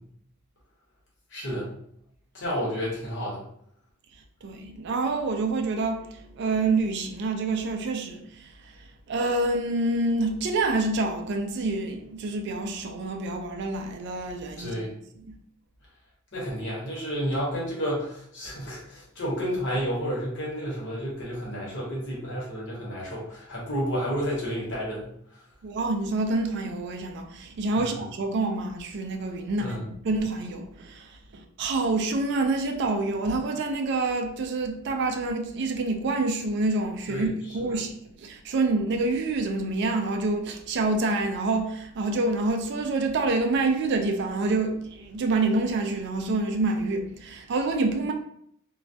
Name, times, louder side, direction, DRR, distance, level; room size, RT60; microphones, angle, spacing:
voice 1, 1.3-1.7 2.3-3.4 14.6-14.9 16.3-25.1 29.6-29.8 37.1-37.3, equal, 55° left, 1.0 m, -31 dB
voice 2, 4.4-14.7 15.2-15.4 25.6-37.9 38.2-48.1, right 3 dB, 55° right, 0.3 m, -27 dB
2.3 x 2.0 x 2.6 m
head